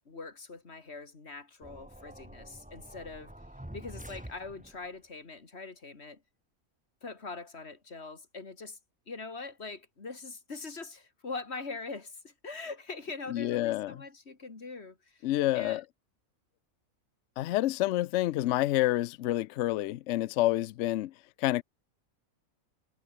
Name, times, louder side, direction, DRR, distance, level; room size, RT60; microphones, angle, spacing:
voice 1, 0.0-3.3 3.7-6.2 7.0-8.8 9.1-15.3 15.5-15.8, left 3 dB, 50° left, 2.6 m, -42 dB
sound 1, 1.6-5.0, right 1 dB, 5° right, 1.3 m, -47 dB
voice 2, 13.3-14.0 15.2-15.8 17.4-21.1 21.4-21.6, left 15 dB, 70° left, 0.8 m, -28 dB
omnidirectional pair, 1.5 m